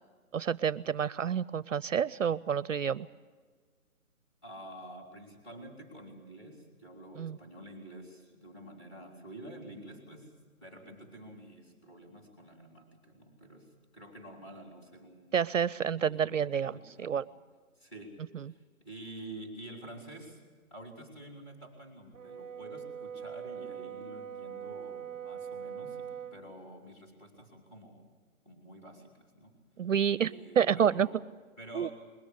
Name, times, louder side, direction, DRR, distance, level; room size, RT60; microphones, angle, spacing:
voice 1, 0.3-3.1 7.2-7.4 15.3-17.2 18.3-18.4 29.8-30.3 30.6-31.1 31.7-31.9, right 8 dB, 60° right, 20 dB, 0.5 m, -29 dB
voice 2, 4.4-15.4 15.9-17.3 17.8-20.4 20.7-28.1 28.5-29.6 30.2-31.2 31.6-31.9, right 1 dB, 20° left, 2 dB, 3.7 m, -49 dB
Brass instrument, 22.1-26.4, right 8 dB, 20° right, 0.9 m, -42 dB
21.0 x 18.0 x 8.3 m, 1.5 s
hypercardioid pair, 165°, 43 cm